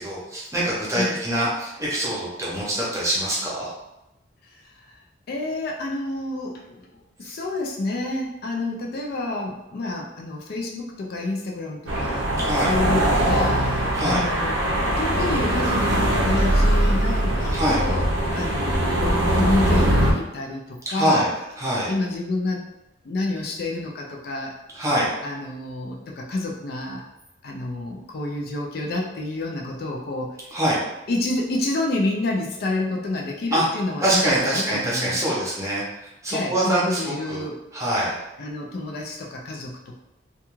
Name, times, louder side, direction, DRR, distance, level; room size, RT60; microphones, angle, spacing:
voice 1, 0.0-3.7 12.4-12.7 13.9-14.2 17.5-17.8 20.9-21.3 21.6-21.9 24.7-25.1 30.5-30.8 33.5-33.7 34.0-37.4 37.7-38.2, right 1 dB, 15° right, -6 dB, 0.7 m, -24 dB
voice 2, 5.3-12.3 12.7-14.6 15.0-21.3 21.9-22.6 23.0-24.5 25.2-27.0 27.4-30.4 31.1-35.4 36.3-37.6 38.4-40.0, left 2 dB, 50° left, 0 dB, 0.4 m, -29 dB
sound 1, 11.9-20.1, right 1 dB, 75° right, 0.5 m, -21 dB
2.3 x 2.2 x 3.0 m, 0.94 s
head